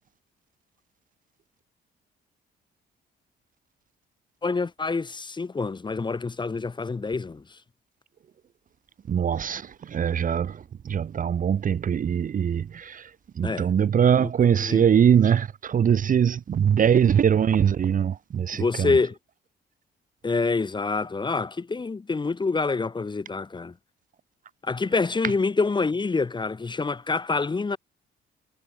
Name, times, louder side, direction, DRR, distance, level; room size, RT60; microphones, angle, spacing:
voice 1, 4.4-7.4 13.4-13.7 14.1-14.3 14.6-14.8 18.5-19.2 20.2-23.7 24.6-27.8, left 4 dB, 25° left, 1.0 m, -26 dB
voice 2, 9.1-19.0, right 8 dB, 45° right, 0.7 m, -22 dB
cardioid pair, 90°, 20 cm